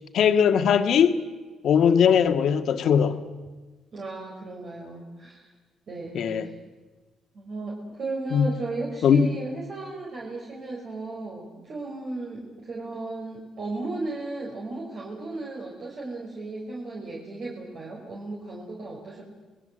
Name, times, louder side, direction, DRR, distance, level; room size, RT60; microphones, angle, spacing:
voice 1, 0.1-1.2 1.6-3.2 6.1-6.5 8.3-8.5 9.0-9.3, left 7 dB, 70° left, 1.7 m, -20 dB
voice 2, 3.9-5.5 5.9-6.5 7.3-19.2, right 2 dB, 55° right, 5.6 m, -35 dB
28.5 x 21.0 x 7.9 m
cardioid pair, 90°, 0 cm